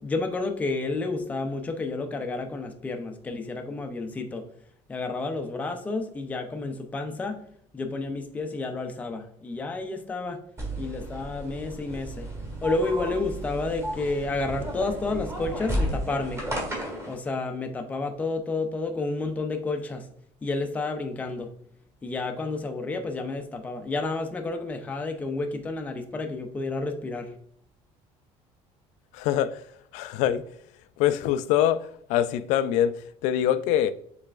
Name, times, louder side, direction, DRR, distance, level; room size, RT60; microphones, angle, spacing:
voice 1, 0.0-4.4 4.9-7.4 7.7-10.4 10.8-12.3 12.6-16.4 17.1-20.1 20.4-21.5 22.0-27.3, left 3 dB, 10° left, 0.5 m, -30 dB
sound 1, 10.6-17.1, equal, 25° right, 1.7 m, -33 dB
voice 2, 29.1-29.6 29.9-30.4 31.0-33.9, left 11 dB, 75° left, 0.4 m, -24 dB
6.7 x 3.3 x 2.4 m
cardioid pair, 160°, 12 cm